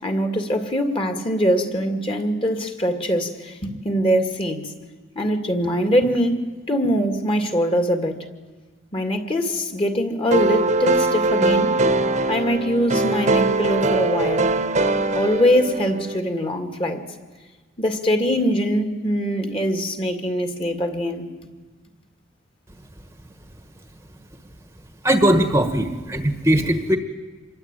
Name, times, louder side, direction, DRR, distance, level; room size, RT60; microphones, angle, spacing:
voice 1, 0.0-4.7 5.2-8.3 8.9-11.8 12.3-14.5 15.2-17.0 17.8-21.3, equal, 25° left, 6 dB, 2.2 m, -22 dB
sound 1, 10.3-16.2, right 2 dB, 35° right, 1.2 m, -21 dB
voice 2, 25.0-27.0, right 1 dB, 15° right, 7 dB, 1.3 m, -19 dB
26.5 x 22.0 x 9.0 m, 1.3 s
head